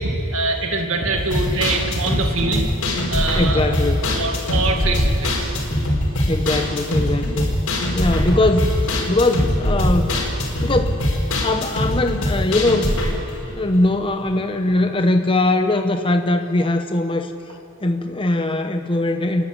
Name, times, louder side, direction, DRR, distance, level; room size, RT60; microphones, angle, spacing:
voice 1, 0.0-2.7 3.1-3.6 4.1-5.5, right 2 dB, 65° right, 3 dB, 2.1 m, -23 dB
sound 1, 1.2-14.4 14.6-14.7 15.1-15.2, left 1 dB, 80° left, 4.6 m, -22 dB
voice 2, 3.4-4.1 6.3-7.4 7.9-8.8 9.1-10.1 10.6-11.0 11.4-12.9 13.6-17.3 17.8-19.4, left 2 dB, 25° left, 6 dB, 0.8 m, -20 dB
27.5 x 12.0 x 9.7 m, 2.8 s
head